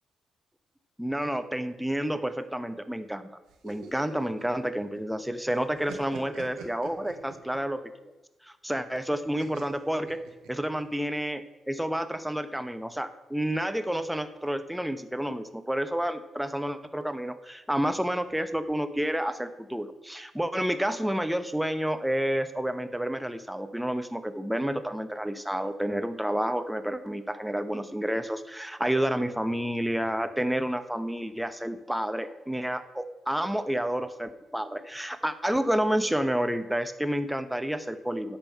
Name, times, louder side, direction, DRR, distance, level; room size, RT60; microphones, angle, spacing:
voice 1, 1.0-3.3 3.6-8.1 8.4-10.2 10.5-38.4, equal, 5° right, 10 dB, 0.9 m, -30 dB
sound 1, 3.5-5.2 5.5-7.7 9.4-10.8, right 6 dB, 70° right, 1.3 m, -45 dB
8.9 x 5.6 x 5.5 m, 1.1 s
hypercardioid pair, 45°, 0 cm